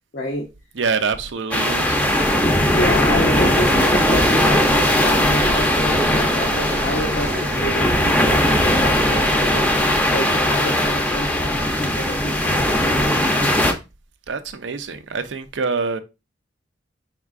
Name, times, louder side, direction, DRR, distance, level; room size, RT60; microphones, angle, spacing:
voice 1, 0.1-0.5 2.7-9.7 10.1-13.2, left 1 dB, 55° left, 0.6 m, -28 dB
voice 2, 0.7-2.0 14.3-16.0, right 4 dB, 80° right, 0.6 m, -25 dB
sound 1, 1.5-13.7, left 1 dB, 10° left, 0.6 m, -19 dB
sound 2, 2.1-9.6, right 1 dB, 25° right, 0.9 m, -30 dB
4.6 x 3.6 x 2.4 m
head